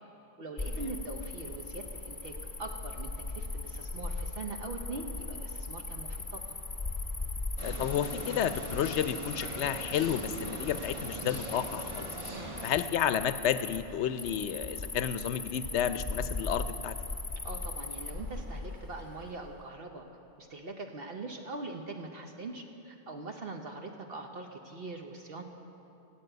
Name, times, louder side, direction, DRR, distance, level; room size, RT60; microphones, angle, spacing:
voice 1, 0.4-6.4 12.3-12.5 17.4-20.1 20.4-25.4, right 3 dB, 55° right, 3 dB, 1.1 m, -42 dB
Cricket, 0.6-19.5, left 3 dB, 20° left, 0.7 m, -39 dB
voice 2, 7.6-12.1 12.6-17.0, left 9 dB, 75° left, 12 dB, 0.9 m, -31 dB
sound 1, 7.6-12.7, right 1 dB, 25° right, 1.2 m, -41 dB
16.0 x 8.8 x 7.9 m, 2.8 s
omnidirectional pair, 1.2 m